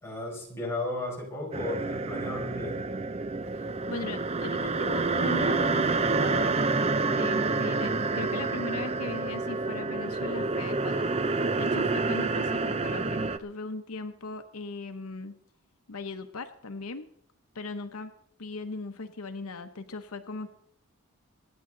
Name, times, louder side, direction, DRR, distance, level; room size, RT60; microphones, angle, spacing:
voice 1, 0.0-2.9, left 2 dB, 10° left, -3 dB, 5.2 m, -34 dB
sound 1, 1.5-13.4, right 3 dB, 30° right, 0.6 m, -28 dB
voice 2, 3.9-6.6 7.0-15.3 15.9-17.1 17.5-18.1 18.4-20.5, left 3 dB, 80° left, 8 dB, 0.9 m, -38 dB
25.5 x 9.6 x 3.8 m, 0.70 s
head